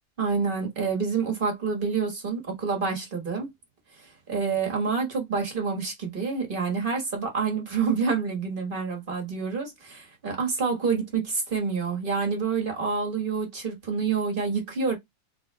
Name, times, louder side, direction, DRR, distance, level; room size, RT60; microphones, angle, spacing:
voice 1, 0.2-3.5 4.0-15.0, right 5 dB, 35° right, 1.6 m, -28 dB
3.7 x 3.1 x 3.2 m
omnidirectional pair, 1.8 m